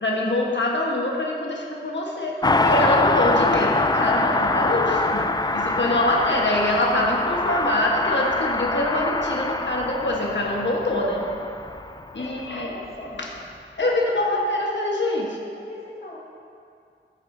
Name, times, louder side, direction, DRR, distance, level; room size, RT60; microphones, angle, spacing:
voice 1, 0.0-2.4 2.6-5.3 5.5-11.2 12.1-13.3 13.8-15.4, left 1 dB, 65° left, -2 dB, 1.3 m, -24 dB
Car passing by, 2.4-12.4 12.6-12.7, left 2 dB, 20° left, 0.4 m, -24 dB
voice 2, 12.1-13.3 13.8-14.4 15.6-16.2, left 1 dB, 50° left, -6 dB, 2.4 m, -42 dB
13.0 x 8.5 x 2.7 m, 2.4 s
wide cardioid pair, 40°, 20 cm